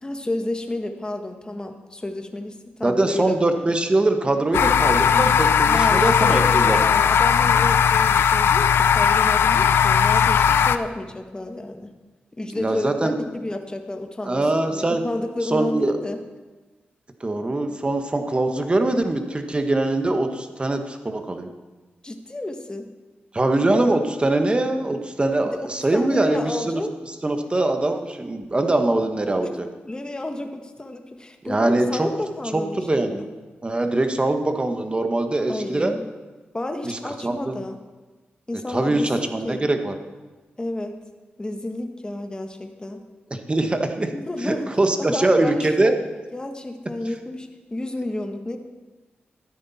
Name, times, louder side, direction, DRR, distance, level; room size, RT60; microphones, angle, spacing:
voice 1, 0.0-3.4 5.7-11.9 12.4-16.2 22.0-22.8 25.4-25.6 25.9-26.9 29.8-33.3 35.5-36.1 36.5-37.8 38.5-39.6 40.6-40.9 41.4-43.0 44.1-44.7 45.0-46.0 46.3-48.6, left 1 dB, 20° left, 5 dB, 1.4 m, -31 dB
voice 2, 2.8-6.8 12.5-13.1 14.2-15.0 15.4-16.0 17.2-21.5 23.3-26.8 27.2-29.6 31.4-32.1 32.5-33.2 33.6-35.9 36.8-37.6 38.7-40.0 43.3-44.1 44.4-45.9, right 2 dB, 25° right, 6 dB, 1.4 m, -22 dB
sound 1, 4.5-10.8, left 7 dB, 90° left, 0.5 m, -18 dB
13.0 x 9.9 x 4.3 m, 1.2 s
cardioid pair, 65°, 4 cm